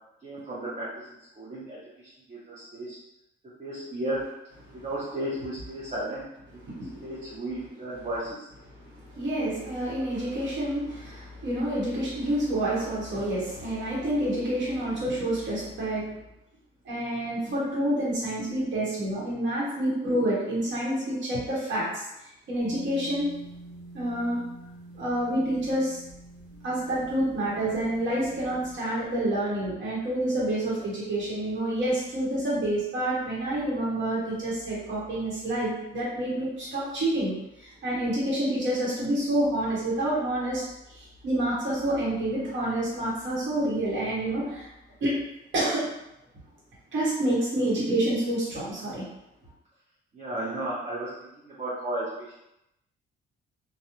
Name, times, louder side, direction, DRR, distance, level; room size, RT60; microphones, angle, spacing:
voice 1, 0.2-3.0 3.6-4.3 4.7-6.2 6.5-6.6 7.0-8.5 50.1-52.4, right 1 dB, 35° right, -7 dB, 0.6 m, -34 dB
voice 2, 6.6-7.1 8.7-16.1 16.8-23.3 23.9-24.4 24.9-26.0 26.6-44.7 45.0-45.2 45.5-45.9 46.9-49.1, right 1 dB, 70° right, -7 dB, 0.9 m, -28 dB
sound 1, 22.6-28.8, right 2 dB, 55° right, 1.2 m, -47 dB
2.3 x 2.0 x 2.9 m, 0.86 s
cardioid pair, 90°, 20 cm